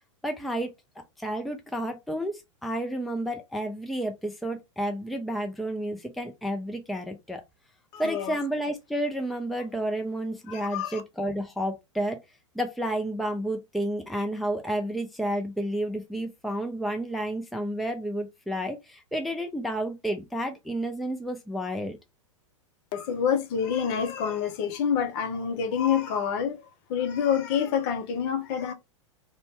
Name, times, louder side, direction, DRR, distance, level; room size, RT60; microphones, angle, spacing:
voice 1, 0.2-0.7 1.2-7.4 8.0-12.2 12.5-22.0, right 1 dB, ahead, 0.5 m, -31 dB
voice 2, 7.9-8.4 10.5-11.0 22.9-26.6 26.9-28.7, left 7 dB, 45° left, 0.7 m, -27 dB
2.6 x 2.2 x 3.2 m
hypercardioid pair, 100°, 16 cm